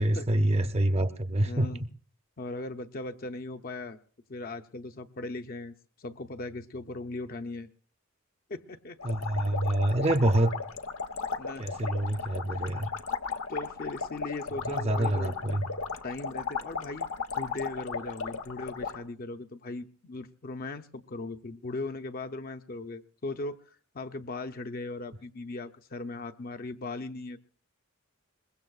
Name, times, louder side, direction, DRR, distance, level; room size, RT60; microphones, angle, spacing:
voice 1, 0.0-1.7 9.0-10.5 11.6-12.9 14.6-15.7, right 1 dB, 30° right, 0.6 m, -26 dB
voice 2, 1.4-1.8 2.4-4.0 4.3-7.7 8.5-9.0 10.0-10.4 11.4-11.7 12.5-12.6 13.5-15.4 16.0-17.1 17.4-27.4, left 2 dB, 45° left, 0.6 m, -38 dB
sound 1, 9.0-19.0, left 5 dB, 90° left, 1.1 m, -35 dB
22.5 x 21.0 x 2.4 m
head